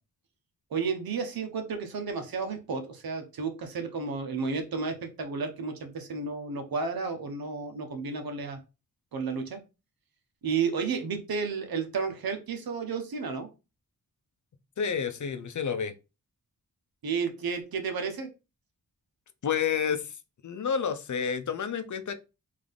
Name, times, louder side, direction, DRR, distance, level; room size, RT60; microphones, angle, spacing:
voice 1, 0.7-8.6 9.1-9.6 10.4-13.5 17.0-18.3, right 5 dB, 85° right, 1.0 m, -32 dB
voice 2, 14.8-15.9 19.4-20.2 20.4-22.2, left 7 dB, 55° left, 0.7 m, -29 dB
3.8 x 2.8 x 3.4 m
cardioid pair, 65°, 35 cm